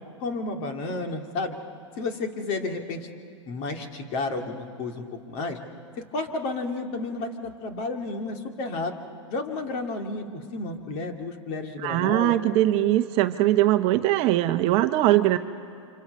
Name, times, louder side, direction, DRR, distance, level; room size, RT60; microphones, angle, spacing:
voice 1, 0.2-1.6 2.0-3.1 3.5-5.6 6.1-8.9 9.3-12.3 15.1-15.4, left 3 dB, 45° left, 4 dB, 2.5 m, -31 dB
voice 2, 11.8-15.4, right 15 dB, 40° right, 9 dB, 0.9 m, -21 dB
29.5 x 26.5 x 5.4 m, 2.6 s
hypercardioid pair, 130°, 16 cm